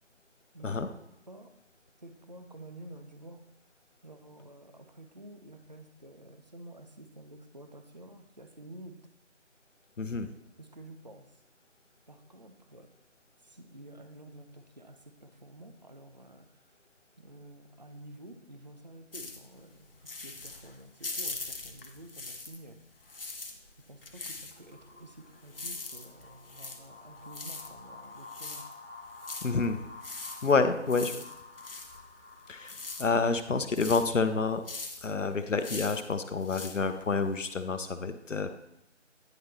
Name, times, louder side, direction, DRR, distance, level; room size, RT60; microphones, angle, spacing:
voice 1, 0.5-0.9 1.3-1.5 2.0-3.5 4.0-9.0 10.6-11.4 12.1-12.9 13.4-16.8 17.2-22.8 23.9-28.7 31.1-31.2, right 1 dB, 35° right, 6 dB, 0.5 m, -50 dB
voice 2, 10.0-10.3 29.4-29.8 30.4-31.1 32.5-34.6 35.0-38.6, left 4 dB, 90° left, 9 dB, 0.8 m, -28 dB
sound 1, 19.1-22.7 23.0-37.6, left 3 dB, 50° left, 0.8 m, -42 dB
sound 2, 24.5-34.0, left 3 dB, 20° left, 1.1 m, -50 dB
9.4 x 4.1 x 3.4 m, 0.87 s
figure-of-eight pair, 165°, 36 cm